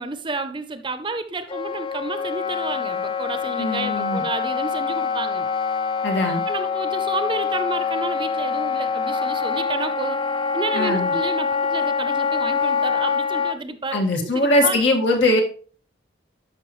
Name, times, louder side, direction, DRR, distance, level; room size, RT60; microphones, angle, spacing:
voice 1, 0.0-5.5 6.5-10.2 10.5-14.8, right 3 dB, 25° right, 10 dB, 0.6 m, -31 dB
Wind instrument woodwind instrument, 1.5-13.6, left 5 dB, 25° left, 0.3 m, -25 dB
voice 2, 3.6-4.2 6.0-6.4 10.7-11.1 13.9-15.4, left 1 dB, 75° left, 2 dB, 1.8 m, -21 dB
12.5 x 5.4 x 3.1 m, 0.41 s
head